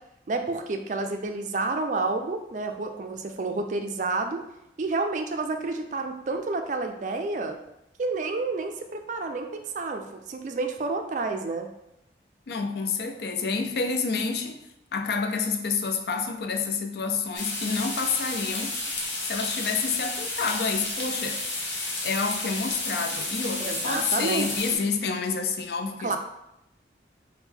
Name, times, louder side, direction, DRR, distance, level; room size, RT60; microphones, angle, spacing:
voice 1, 0.3-4.4 4.8-7.6 8.0-11.7 23.6-24.8 26.0-26.2, right 3 dB, 45° right, 5 dB, 0.3 m, -30 dB
voice 2, 12.5-14.6 14.9-18.8 19.2-21.4 22.0-26.2, left 4 dB, 65° left, 6 dB, 0.4 m, -28 dB
sound 1, 17.3-24.8, left 2 dB, 90° left, 1.0 m, -31 dB
3.6 x 2.2 x 4.4 m, 0.85 s
head